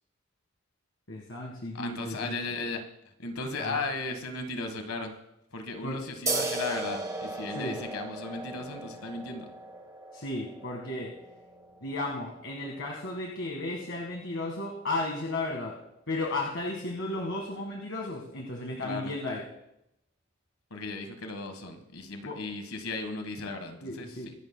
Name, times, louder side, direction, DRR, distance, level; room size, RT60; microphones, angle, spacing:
voice 1, 1.1-2.3 3.6-3.8 5.8-6.0 7.6-7.8 10.1-11.2 11.8-15.8 16.1-19.4 22.2-22.4 23.8-24.3, left 2 dB, 60° left, 0 dB, 1.7 m, -34 dB
voice 2, 1.7-2.8 3.2-5.2 5.5-9.5 18.8-19.1 20.7-24.3, left 3 dB, 90° left, 6 dB, 1.4 m, -36 dB
sound 1, 6.3-13.4, right 2 dB, 15° right, 1.2 m, -37 dB
24.5 x 11.5 x 2.2 m, 0.81 s
head